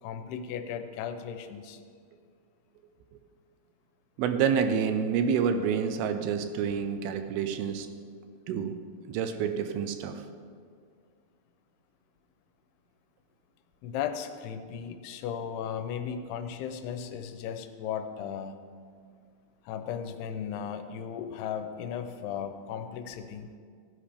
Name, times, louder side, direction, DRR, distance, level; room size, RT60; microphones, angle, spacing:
voice 1, 0.0-1.8 13.8-18.6 19.7-23.5, left 8 dB, 80° left, 8 dB, 2.7 m, -36 dB
voice 2, 4.2-7.9 8.5-8.8 9.1-10.2, right 7 dB, 80° right, 8 dB, 2.5 m, -28 dB
16.0 x 10.0 x 3.4 m, 2.1 s
omnidirectional pair, 4.7 m